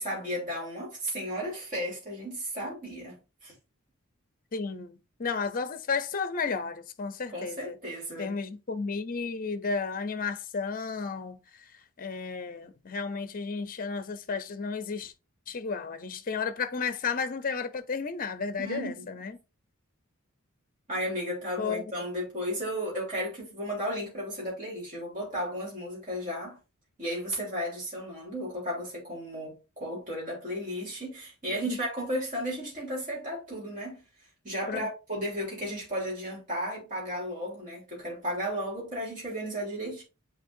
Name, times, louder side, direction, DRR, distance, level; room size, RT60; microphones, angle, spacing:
voice 1, 0.0-3.5 7.3-8.3 18.6-19.2 20.9-26.6 27.0-34.0 34.4-40.0, equal, 40° right, 3.4 m, -34 dB
voice 2, 4.5-7.7 8.2-11.4 12.0-15.1 15.5-19.4 21.6-21.9 31.7-31.8 34.7-34.9, left 5 dB, 40° left, 0.6 m, -33 dB
8.1 x 4.4 x 2.6 m
head